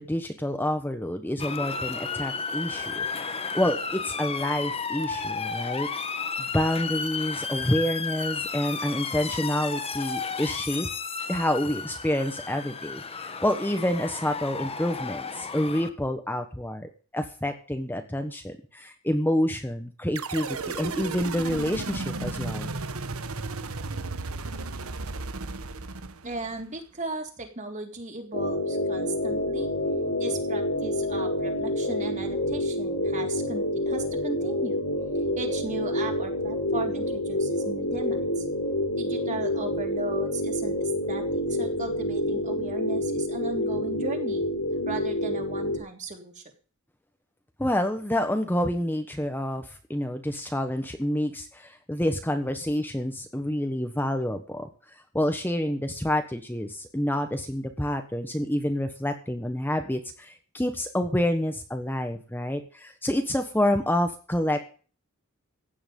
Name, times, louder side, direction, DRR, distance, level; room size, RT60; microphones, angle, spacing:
voice 1, 0.0-6.1 6.4-10.9 11.3-22.7 47.6-64.6, left 1 dB, 10° left, 6 dB, 1.3 m, -28 dB
Motor vehicle (road) / Siren, 1.4-15.9, left 5 dB, 30° left, 1.2 m, -33 dB
sound 1, 20.2-26.6, right 3 dB, 85° right, 1.3 m, -34 dB
voice 2, 26.2-29.7 30.2-34.8 35.4-38.4 39.0-44.4 44.8-46.4, right 2 dB, 35° right, 3 dB, 3.4 m, -37 dB
sound 2, 28.3-45.8, left 1 dB, 85° left, 4.9 m, -28 dB
16.0 x 10.0 x 5.4 m, 0.38 s
head